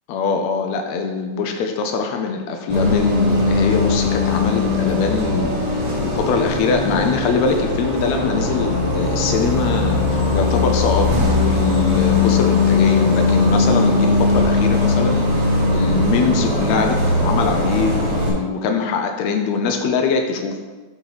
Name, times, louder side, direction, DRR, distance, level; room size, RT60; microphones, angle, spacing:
voice 1, 0.1-5.5 6.0-20.6, left 5 dB, 75° left, 4 dB, 1.8 m, -22 dB
Bus, 2.7-18.3, left 3 dB, 50° right, 2.9 m, -19 dB
8.5 x 4.3 x 5.0 m, 1.3 s
omnidirectional pair, 3.5 m